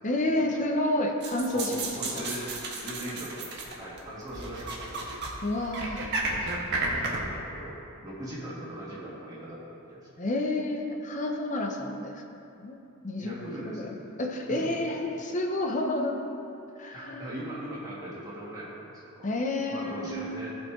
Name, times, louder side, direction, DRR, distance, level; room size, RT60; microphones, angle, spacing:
voice 1, 0.0-2.2 5.4-6.0 10.2-12.2 12.6-12.8 13.0-16.2 16.8-17.3 19.2-20.5, left 1 dB, 35° left, 2 dB, 0.7 m, -30 dB
sound 1, 1.2-4.0 4.3-5.3 5.6-7.2, right 3 dB, 50° right, 1.3 m, -32 dB
voice 2, 1.5-2.5 2.7-5.0 6.2-7.8 8.0-10.2 13.2-14.1 14.5-14.9 16.9-19.2 19.7-20.5, right 1 dB, 15° right, -8 dB, 2.2 m, -40 dB
15.0 x 5.3 x 3.7 m, 2.8 s
head